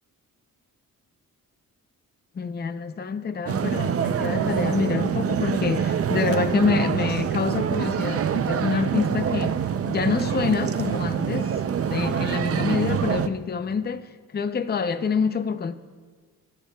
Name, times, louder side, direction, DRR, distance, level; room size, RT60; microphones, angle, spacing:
voice 1, 2.3-9.6 9.9-11.6 11.9-15.7, left 5 dB, 30° left, 0.6 m, -26 dB
sound 1, 3.5-13.3, right 8 dB, 45° right, 0.5 m, -25 dB
24.5 x 14.0 x 2.3 m
cardioid pair, 110°, 34 cm